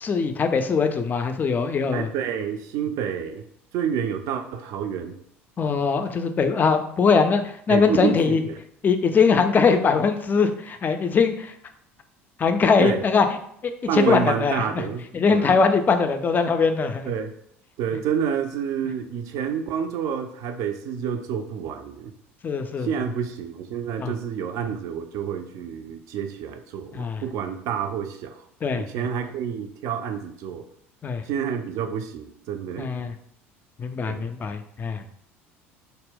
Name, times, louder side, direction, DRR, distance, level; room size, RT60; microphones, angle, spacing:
voice 1, 0.0-2.1 5.6-7.4 7.7-8.4 8.8-11.5 12.4-13.3 13.6-14.6 15.1-17.1 22.4-22.9 24.0-24.1 26.9-27.2 28.6-29.0 31.0-31.2 32.8-33.1 33.8-35.1, left 5 dB, 25° left, 7 dB, 0.3 m, -21 dB
voice 2, 1.9-3.4 3.7-5.2 7.7-8.6 12.8-13.0 13.9-15.6 17.0-17.3 17.8-22.1 22.8-28.4 28.8-30.6 31.3-32.9 34.1-34.2, right 8 dB, 50° right, 7 dB, 0.3 m, -29 dB
2.1 x 2.0 x 3.5 m, 0.68 s
figure-of-eight pair, 65°, 7 cm